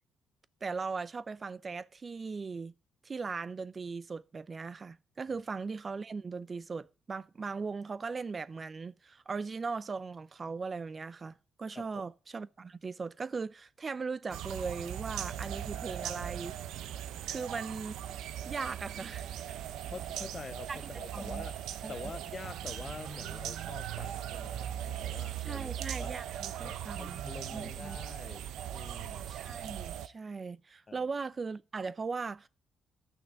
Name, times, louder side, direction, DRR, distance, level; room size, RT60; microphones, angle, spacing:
voice 1, 0.6-2.7 3.0-16.9 17.3-17.9 18.5-19.6 20.7-20.8 21.1-21.4 21.8-22.0 25.4-27.2 27.5-28.0 29.3-32.5, right 4 dB, 35° right, 0.6 m, -39 dB
sound 1, 14.3-30.1, right 11 dB, 85° right, 0.7 m, -39 dB
voice 2, 19.9-21.6 21.9-25.7 26.0-26.1 26.6-29.4 30.9-31.0, left 4 dB, 30° left, 0.5 m, -46 dB
12.0 x 6.1 x 7.6 m
cardioid pair, 90°, 0 cm